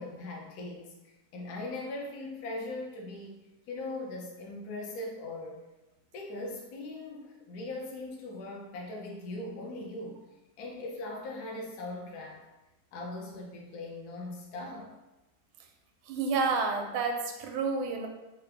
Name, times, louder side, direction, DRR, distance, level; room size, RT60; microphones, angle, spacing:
voice 1, 0.0-3.4 3.7-5.6 6.1-10.2 10.6-12.5 12.9-14.9, left 2 dB, 65° left, -2 dB, 1.0 m, -40 dB
voice 2, 16.1-18.1, right 4 dB, 85° right, 4 dB, 1.4 m, -29 dB
3.7 x 2.4 x 3.3 m, 1.0 s
omnidirectional pair, 2.2 m